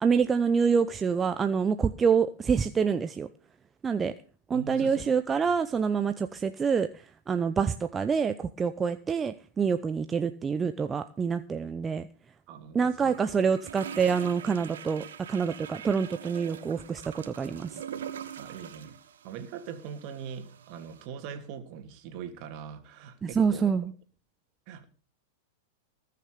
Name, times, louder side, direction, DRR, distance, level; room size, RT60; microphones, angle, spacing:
voice 1, 0.0-3.3 3.8-4.1 4.5-6.9 7.3-12.1 12.7-17.7 23.2-23.9, right 6 dB, 20° right, 9 dB, 0.8 m, -26 dB
voice 2, 4.5-5.1 12.5-13.1 18.4-19.0 19.2-23.2 23.5-23.7 24.7-24.8, right 7 dB, 50° right, 7 dB, 2.9 m, -41 dB
sound 1, 13.0-21.1, right 8 dB, 80° right, 1.9 m, -43 dB
19.5 x 6.8 x 6.8 m, 0.39 s
hypercardioid pair, 110°, 0 cm